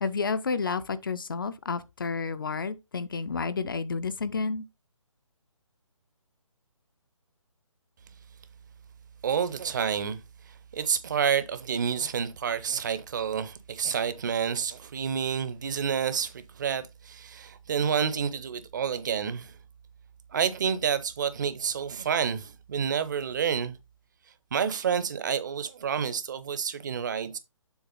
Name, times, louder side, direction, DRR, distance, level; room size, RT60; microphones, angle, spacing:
voice 1, 0.0-4.6, left 4 dB, 40° left, 0.4 m, -30 dB
voice 2, 9.2-19.5 20.3-23.8 24.5-27.4, right 7 dB, 35° right, 0.7 m, -29 dB
7.1 x 3.6 x 5.3 m
figure-of-eight pair, 145°, 17 cm